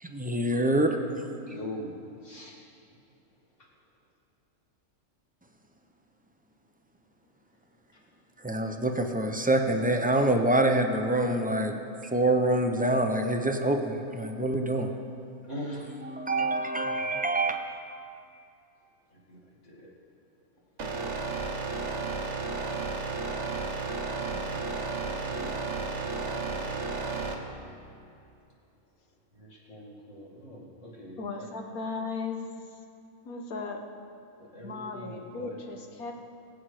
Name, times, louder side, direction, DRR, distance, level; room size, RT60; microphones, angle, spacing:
voice 1, 0.0-1.0 8.4-11.8 12.1-14.9 16.1-17.6, right 1 dB, 10° right, 4 dB, 0.3 m, -26 dB
voice 2, 1.5-2.0 2.2-2.6 7.9-8.0 15.5-16.4 19.1-19.9 24.2-27.5 29.3-31.5 34.4-35.6, equal, 55° left, -4 dB, 2.6 m, -44 dB
sound 1, 20.8-27.3, right 4 dB, 50° right, 1.4 m, -33 dB
voice 3, 31.2-32.4 33.2-33.8 34.6-36.1, left 4 dB, 75° left, 3 dB, 1.7 m, -36 dB
23.0 x 7.9 x 5.0 m, 2.6 s
omnidirectional pair, 1.5 m